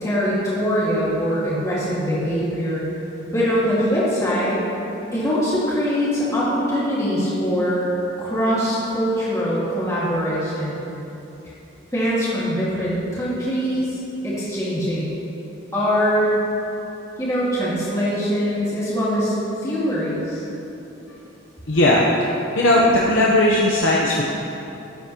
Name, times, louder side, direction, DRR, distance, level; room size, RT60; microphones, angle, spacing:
voice 1, 0.0-2.8 3.3-4.6 5.1-7.9 8.2-10.8 11.9-14.0 14.2-15.1 15.7-16.4 17.2-19.3 19.6-20.4, equal, 15° left, -9 dB, 1.8 m, -22 dB
voice 2, 21.7-22.0 22.5-24.2, left 1 dB, 70° left, -4 dB, 0.9 m, -17 dB
13.0 x 9.1 x 2.9 m, 3.0 s
head